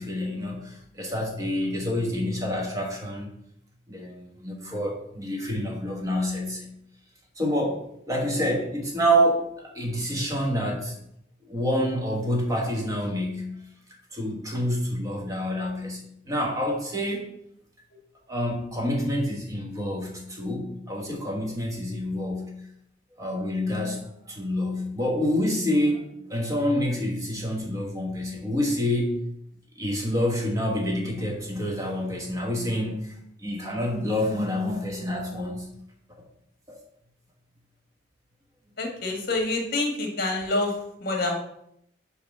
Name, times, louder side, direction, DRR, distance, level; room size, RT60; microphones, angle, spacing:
voice 1, 0.0-3.3 3.9-6.7 7.4-10.9 11.4-13.6 14.1-17.3 18.3-22.6 23.2-29.2 29.8-35.7 36.7-36.8, equal, 20° right, 0 dB, 1.2 m, -27 dB
voice 2, 38.8-40.7 41.0-41.3, left 2 dB, 55° left, 1 dB, 1.7 m, -27 dB
5.4 x 4.9 x 6.0 m, 0.74 s
head